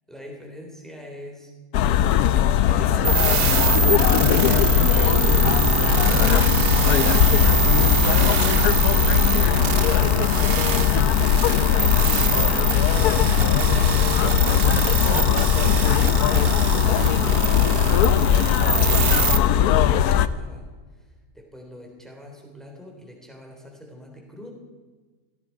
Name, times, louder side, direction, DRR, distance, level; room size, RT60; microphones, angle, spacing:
voice 1, 0.1-1.5 12.3-13.9 18.2-24.5, equal, ahead, 0 dB, 3.5 m, -44 dB
sound 1, 1.7-20.3, left 10 dB, 85° left, 1.1 m, -19 dB
sound 2, 3.0-19.4, right 7 dB, 50° right, 0.8 m, -24 dB
sound 3, 5.6-14.2, right 1 dB, 35° left, 1.6 m, -37 dB
16.0 x 15.5 x 4.7 m, 1.4 s
omnidirectional pair, 1.6 m